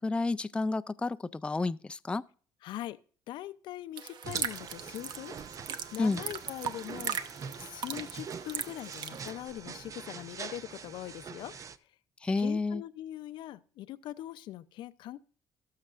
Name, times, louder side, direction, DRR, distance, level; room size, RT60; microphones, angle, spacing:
voice 1, 0.0-2.2 6.0-6.2 12.2-12.8, left 3 dB, 15° left, 0.4 m, -30 dB
voice 2, 2.6-3.0 3.3-5.4 5.6-7.2 7.6-11.6 12.4-15.3, left 13 dB, 75° left, 0.5 m, -42 dB
sound 1, 4.0-9.3, right 8 dB, 65° right, 0.9 m, -39 dB
sound 2, 4.2-11.8, right 6 dB, 40° right, 0.6 m, -44 dB
sound 3, 4.6-10.5, right 5 dB, 80° right, 2.5 m, -57 dB
18.5 x 6.6 x 2.5 m
cardioid pair, 90°, 8 cm